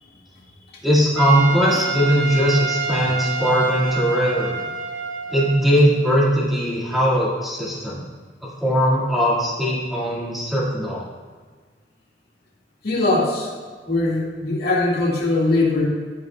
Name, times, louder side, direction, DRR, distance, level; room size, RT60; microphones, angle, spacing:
voice 1, 0.8-4.6 5.3-8.0 8.6-11.0, equal, ahead, -7 dB, 1.9 m, -19 dB
Trumpet, 1.2-5.8, right 4 dB, 85° right, 0.7 m, -27 dB
voice 2, 12.8-13.5 13.9-15.9, left 2 dB, 60° left, -4 dB, 2.0 m, -20 dB
15.0 x 5.4 x 2.3 m, 1.5 s
head